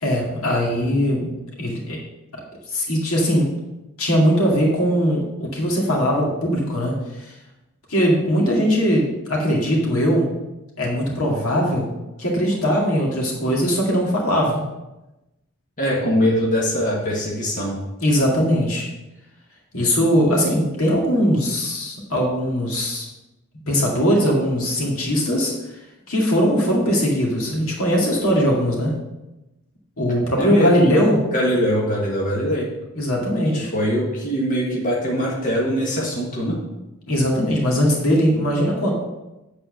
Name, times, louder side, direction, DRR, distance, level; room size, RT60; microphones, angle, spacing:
voice 1, 0.0-1.3 1.6-2.0 2.7-3.5 4.0-7.3 7.9-10.3 10.8-11.9 12.2-14.6 18.0-18.9 19.7-23.1 23.7-25.5 26.1-29.0 30.0-31.2 32.9-33.7 37.1-38.9, equal, 80° left, -2 dB, 2.2 m, -20 dB
voice 2, 15.8-17.8 30.4-30.7 31.3-32.7 33.7-36.6, equal, 40° left, -4 dB, 1.7 m, -22 dB
8.5 x 4.3 x 6.4 m, 0.99 s
head